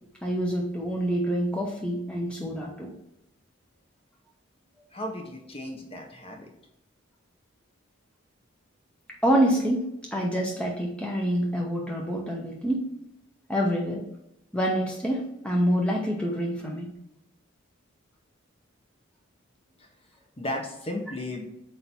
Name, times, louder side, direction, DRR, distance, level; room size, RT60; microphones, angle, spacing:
voice 1, 0.2-2.9 9.2-12.9 13.5-14.0 14.5-16.9, equal, 5° left, -2 dB, 0.8 m, -26 dB
voice 2, 4.9-6.5 20.4-21.4, left 1 dB, 30° left, 2 dB, 1.0 m, -35 dB
7.9 x 2.9 x 4.2 m, 0.84 s
head